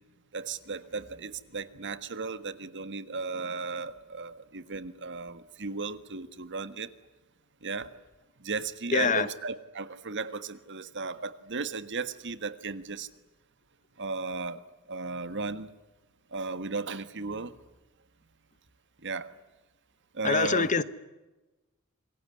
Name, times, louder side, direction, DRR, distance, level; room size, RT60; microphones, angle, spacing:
voice 1, 0.3-6.9 7.6-7.9 8.4-13.1 14.0-14.6 14.9-15.7 16.3-17.5 19.0-19.3 20.1-20.7, right 4 dB, 55° right, 1.6 m, -35 dB
voice 2, 8.9-9.3 20.2-20.8, left 4 dB, 35° left, 1.1 m, -24 dB
27.5 x 22.0 x 9.8 m
head